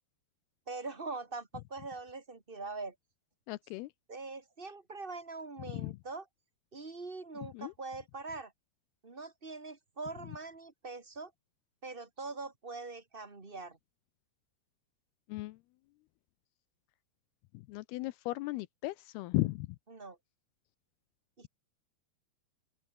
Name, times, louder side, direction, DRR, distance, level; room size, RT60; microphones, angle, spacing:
voice 1, 0.7-2.9 4.1-6.2 6.7-8.5 9.0-11.3 11.8-13.8 19.9-20.2 21.4-21.5, right 3 dB, 25° right, 1.3 m, -43 dB
voice 2, 3.5-3.9 5.7-5.9 7.5-7.7 15.3-15.6 17.7-19.7, left 20 dB, 80° left, 2.4 m, -35 dB
open air
omnidirectional pair, 4.9 m